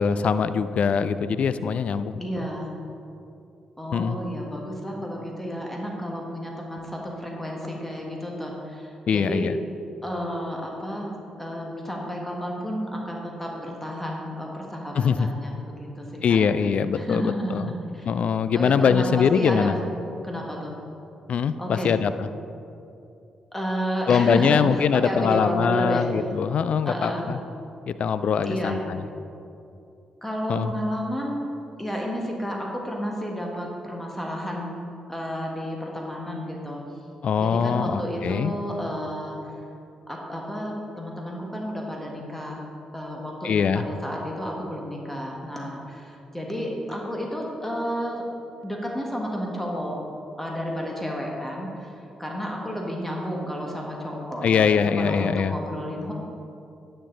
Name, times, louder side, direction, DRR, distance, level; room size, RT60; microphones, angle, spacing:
voice 1, 0.0-2.5 3.9-4.2 9.1-9.6 15.0-15.3 16.2-17.7 18.1-19.8 21.3-22.3 24.1-27.4 27.9-29.0 30.5-30.7 37.2-38.5 43.4-43.8 54.4-55.5, left 6 dB, 55° left, 12 dB, 0.3 m, -22 dB
voice 2, 2.2-2.7 3.8-9.5 10.0-16.4 16.9-18.1 18.5-19.9 20.2-20.8 21.6-22.0 23.5-26.1 26.8-27.3 28.4-28.8 30.2-31.5 31.8-34.8 35.1-36.8 37.4-39.6 40.1-42.7 42.9-48.2 48.6-50.0 50.4-51.9 52.2-56.1, equal, 10° left, -1 dB, 1.6 m, -31 dB
10.0 x 6.6 x 3.9 m, 2.7 s
hypercardioid pair, 40°, 2 cm